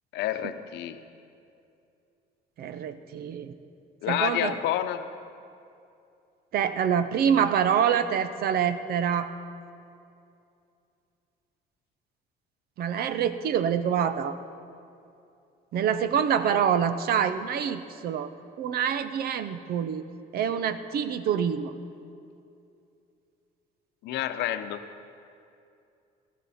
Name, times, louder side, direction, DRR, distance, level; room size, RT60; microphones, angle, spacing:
voice 1, 0.1-1.0 4.0-5.1 16.5-16.6 24.0-24.8, left 12 dB, 80° left, 9 dB, 0.8 m, -29 dB
voice 2, 2.6-3.5 4.1-4.5 6.5-9.3 12.8-14.4 15.7-18.3 18.6-20.0 20.3-21.7, right 8 dB, 65° right, 11 dB, 0.8 m, -26 dB
22.0 x 13.5 x 4.2 m, 2.6 s
cardioid pair, 110°, 17 cm